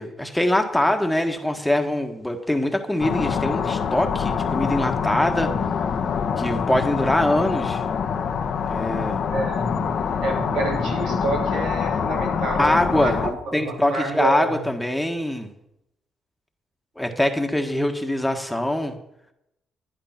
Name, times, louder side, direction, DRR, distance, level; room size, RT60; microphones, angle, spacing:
voice 1, 0.0-5.5 6.4-7.8 8.6-9.2 12.6-15.5 17.0-18.9, left 1 dB, 5° left, 5 dB, 1.4 m, -23 dB
sound 1, 3.0-13.3, left 6 dB, 60° left, 1.3 m, -25 dB
voice 2, 9.3-14.6, right 2 dB, 85° right, 0 dB, 3.4 m, -28 dB
11.5 x 10.0 x 5.9 m, 0.82 s
cardioid pair, 90°, 0 cm